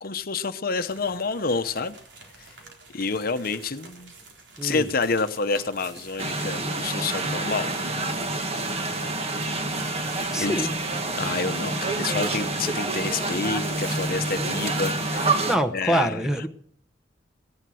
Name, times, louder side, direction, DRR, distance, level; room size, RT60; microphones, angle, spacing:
voice 1, 0.0-1.9 2.4-2.5 2.9-4.1 4.6-7.7 10.3-10.7 11.2-16.3, left 4 dB, 55° left, 10 dB, 0.9 m, -28 dB
sound 1, 0.9-15.3, right 3 dB, 80° right, 3.9 m, -46 dB
sound 2, 6.2-15.6, right 2 dB, 35° right, 1.6 m, -27 dB
voice 2, 10.3-10.7 15.5-16.5, right 1 dB, 5° right, 6 dB, 1.0 m, -25 dB
18.0 x 11.0 x 6.3 m, 0.63 s
head